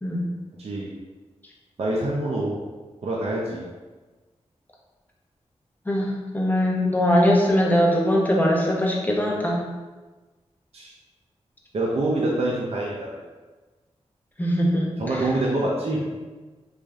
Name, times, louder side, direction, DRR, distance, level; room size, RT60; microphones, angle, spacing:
voice 1, 0.6-0.9 1.8-2.6 3.0-3.7 10.7-10.9 11.7-13.2 15.0-16.0, right 2 dB, 60° right, -3 dB, 0.5 m, -26 dB
voice 2, 5.9-9.7 14.4-14.9 15.9-16.1, equal, 15° left, -2 dB, 0.6 m, -21 dB
3.3 x 2.6 x 2.3 m, 1.3 s
wide cardioid pair, 85°, 12 cm